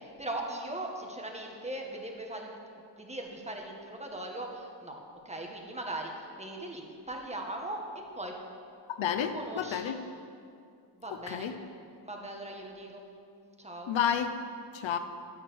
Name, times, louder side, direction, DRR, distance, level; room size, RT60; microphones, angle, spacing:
voice 1, 0.0-2.6 3.0-5.0 5.3-7.8 8.2-8.3 9.2-10.0 11.0-11.5 12.0-13.0 13.6-13.9, right 1 dB, 15° right, 1 dB, 1.7 m, -39 dB
voice 2, 8.9-9.3 9.6-9.9 11.3-11.5 13.9-14.3 14.7-15.0, left 9 dB, 80° left, 9 dB, 0.9 m, -29 dB
12.0 x 9.8 x 6.4 m, 2.5 s
cardioid pair, 115°, 45 cm